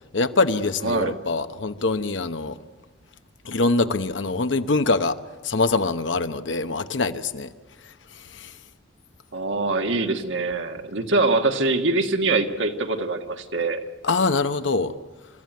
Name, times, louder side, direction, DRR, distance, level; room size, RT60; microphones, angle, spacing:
voice 1, 0.1-2.6 3.4-5.2 5.4-7.5 8.1-8.5 14.0-14.9, left 3 dB, 80° left, 1.0 m, -24 dB
voice 2, 0.8-1.1 9.3-13.8, right 3 dB, 85° right, 1.8 m, -23 dB
28.5 x 14.0 x 9.4 m
head